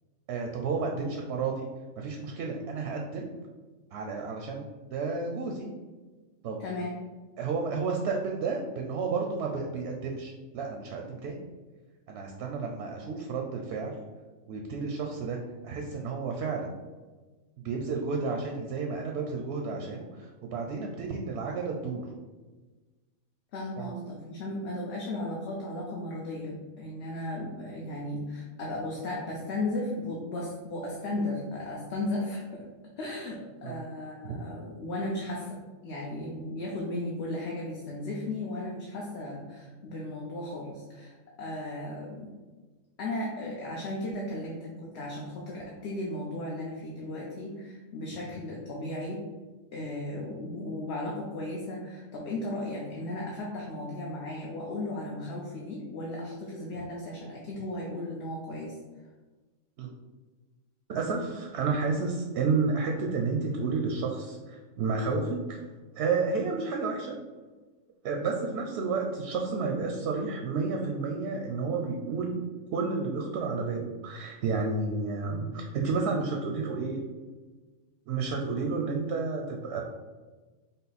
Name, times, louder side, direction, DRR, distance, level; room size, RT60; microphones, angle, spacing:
voice 1, 0.3-1.7 2.0-3.3 3.9-4.6 4.9-5.7 6.4-6.6 7.4-11.4 12.1-14.0 14.5-15.4 15.6-16.7 17.6-22.1 23.8-23.9 33.6-33.8 34.2-34.4 59.8-59.9 60.9-67.2 68.0-72.4 72.7-77.1 78.1-79.8, right 4 dB, 65° right, 1 dB, 0.7 m, -31 dB
voice 2, 6.6-6.9 23.5-32.7 33.0-35.6 35.8-42.3 43.0-49.2 49.7-58.8, left 1 dB, 60° left, -3 dB, 0.9 m, -35 dB
5.4 x 2.1 x 4.0 m, 1.3 s
omnidirectional pair, 1.4 m